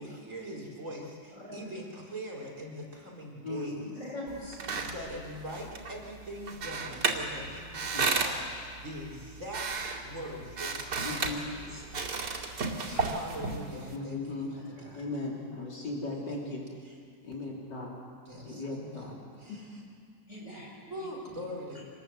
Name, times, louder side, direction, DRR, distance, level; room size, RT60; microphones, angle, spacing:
voice 1, 0.0-4.0 4.7-9.6 10.0-11.2 11.5-11.8 12.9-15.1 15.3-15.5 16.0-16.3 16.8-17.0 18.2-19.8 20.9-21.8, equal, 45° right, -2 dB, 4.8 m, -42 dB
voice 2, 1.3-1.7 3.9-4.6 11.2-11.4 11.7-11.8 12.9-13.0 14.5-15.1 20.3-21.1 21.7-21.8, left 1 dB, 45° left, -4 dB, 7.6 m, -44 dB
voice 3, 3.4-3.7 7.9-8.1 11.0-11.4 13.9-14.5 14.9-16.6 17.2-17.9 18.4-19.2 19.5-19.6, left 3 dB, 85° left, -3 dB, 4.6 m, -37 dB
sound 1, 4.3-14.0, right 4 dB, 80° right, 3.1 m, -34 dB
27.0 x 20.0 x 8.0 m, 2.2 s
omnidirectional pair, 1.8 m